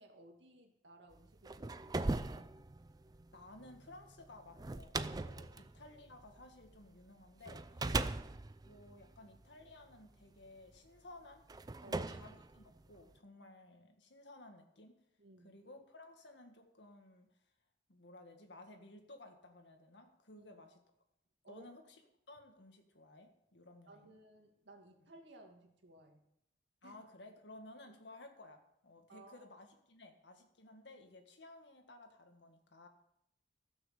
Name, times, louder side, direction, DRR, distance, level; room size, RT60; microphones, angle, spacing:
voice 1, 0.0-2.5 7.8-8.2 11.8-12.1 15.2-15.6 20.3-20.5 21.4-21.8 23.9-26.2 26.8-27.0 29.1-29.5, right 1 dB, 90° right, 2 dB, 2.2 m, -59 dB
sound 1, 1.3-6.9 7.5-9.9 10.8-10.9 11.5-13.2, right 2 dB, 20° right, 0.4 m, -40 dB
voice 2, 3.3-7.9 8.6-11.4 11.9-15.0 15.4-17.3 17.9-20.8 21.5-22.0 22.3-24.1 25.0-25.1 26.8-32.9, left 2 dB, 85° left, 5 dB, 1.8 m, -56 dB
15.0 x 6.4 x 6.7 m, 0.80 s
head